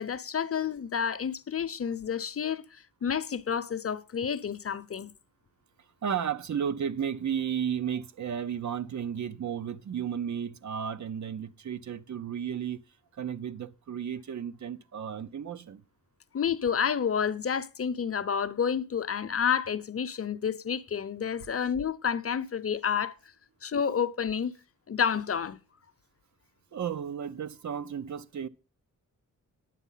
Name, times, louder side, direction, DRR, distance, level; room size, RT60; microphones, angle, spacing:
voice 1, 0.0-5.1 16.3-23.1 23.6-24.5 24.9-25.6, left 7 dB, 45° left, 0.7 m, -30 dB
voice 2, 6.0-12.8 13.1-15.8 26.7-28.5, right 8 dB, 60° right, 0.7 m, -33 dB
10.0 x 8.1 x 5.6 m
wide cardioid pair, 130°, 32 cm